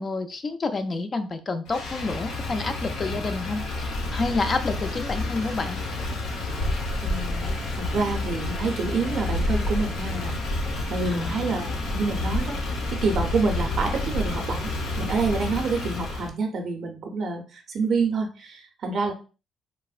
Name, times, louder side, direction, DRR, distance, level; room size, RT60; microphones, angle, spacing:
voice 1, 0.0-5.8 11.1-11.5, left 3 dB, 35° left, 8 dB, 0.4 m, -29 dB
Motor vehicle (road), 1.7-16.3, left 2 dB, 80° left, 0.7 m, -29 dB
voice 2, 7.0-7.5 7.8-10.4 10.9-12.6 12.9-14.7 15.0-19.1, right 4 dB, 60° right, 4 dB, 0.5 m, -27 dB
3.4 x 2.0 x 2.4 m, 0.34 s
cardioid pair, 90°, 0 cm